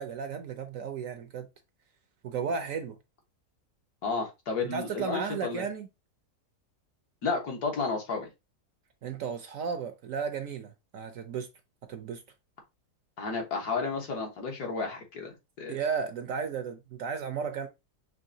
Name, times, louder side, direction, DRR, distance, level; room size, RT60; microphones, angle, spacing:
voice 1, 0.0-1.5 2.2-3.0 4.6-5.9 9.0-11.5 11.9-12.2 15.7-17.7, right 6 dB, 65° right, 0.9 m, -34 dB
voice 2, 4.0-5.6 7.2-8.3 13.2-15.8, left 4 dB, 70° left, 1.7 m, -32 dB
5.6 x 3.2 x 2.7 m
omnidirectional pair, 1.7 m